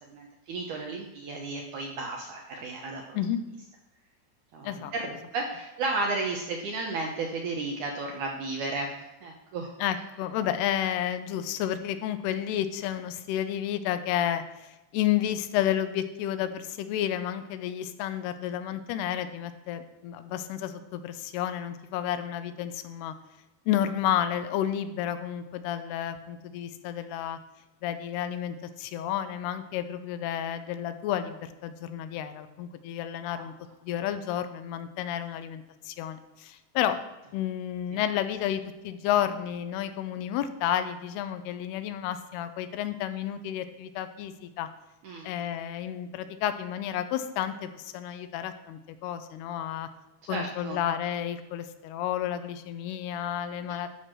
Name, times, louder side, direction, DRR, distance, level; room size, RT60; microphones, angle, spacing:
voice 1, 0.1-3.2 4.5-9.0 9.2-9.7 33.3-33.4 37.9-38.0 45.0-45.3 50.3-50.8, right 3 dB, 75° right, 1 dB, 1.8 m, -33 dB
voice 2, 9.8-23.1 23.7-27.4 27.8-33.5 33.8-37.0 37.3-44.7 45.2-49.9 50.3-53.9, left 10 dB, 90° left, 10 dB, 2.6 m, -31 dB
12.0 x 4.6 x 5.9 m, 0.99 s
omnidirectional pair, 4.6 m